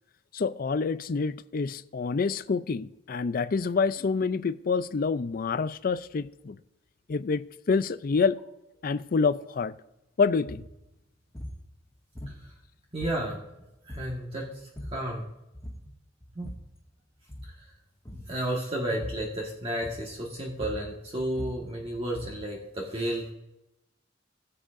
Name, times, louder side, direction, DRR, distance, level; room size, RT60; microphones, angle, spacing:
voice 1, 0.3-6.6 7.1-8.4 8.8-9.7 10.2-10.6, left 4 dB, 50° left, 0.4 m, -27 dB
sound 1, 10.5-10.7 11.3-11.6 12.1-12.7 13.0-13.5 13.9-14.2 14.6-15.1 15.5-15.9 16.2-16.8 17.2-17.6 18.0-18.4 19.0-19.3 19.8-20.2 20.5-22.5, equal, 15° left, 1.9 m, -41 dB
voice 2, 12.9-13.4 13.9-14.5 14.9-15.2 16.3-16.4 18.3-23.3, right 1 dB, 30° right, 1.5 m, -32 dB
18.5 x 7.8 x 2.6 m
head